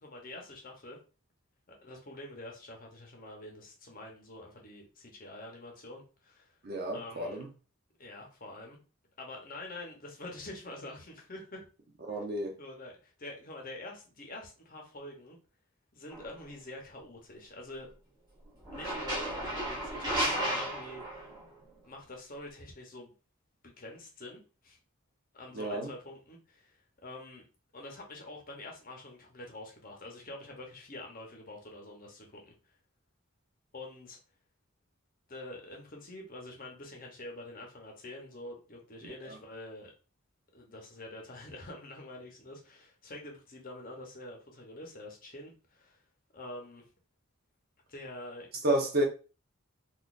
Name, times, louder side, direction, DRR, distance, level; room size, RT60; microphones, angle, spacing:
voice 1, 0.0-1.0 1.8-6.6 6.9-7.4 8.0-8.8 9.2-11.6 12.6-15.4 15.9-17.9 18.7-21.2 21.8-23.1 23.6-24.8 25.3-27.4 27.7-32.5 33.7-34.2 35.3-39.9 40.5-46.0 46.3-46.8 47.9-48.5, left 1 dB, 40° left, 0.9 m, -46 dB
voice 2, 6.6-7.5 12.1-12.5 25.5-25.9 39.3-39.4 48.6-49.0, right 1 dB, 45° right, 0.8 m, -30 dB
sound 1, 16.1-16.3 18.6-21.5, right 1 dB, 20° right, 1.1 m, -33 dB
4.1 x 2.6 x 2.5 m
head